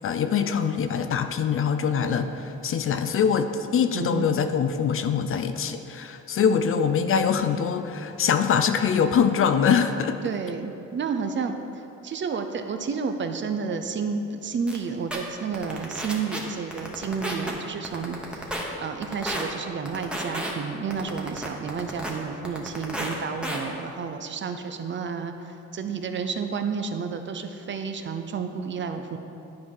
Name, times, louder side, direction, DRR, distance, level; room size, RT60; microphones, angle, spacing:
voice 1, 0.0-10.2, left 7 dB, 45° left, 8 dB, 0.4 m, -23 dB
voice 2, 3.9-4.3 6.5-6.6 7.0-7.1 10.2-11.5 12.0-18.2 18.8-25.3 25.7-29.2, right 5 dB, 40° right, 7 dB, 0.5 m, -31 dB
sound 1, 14.7-14.8 15.1-15.2 15.5-16.4 16.7-17.5 17.8-18.6 19.0-19.4 19.9-20.5 20.9-22.1 22.4-23.1 23.4-23.6, right 1 dB, 5° right, 1.1 m, -31 dB
10.5 x 4.6 x 3.8 m, 2.8 s
cardioid pair, 90°, 30 cm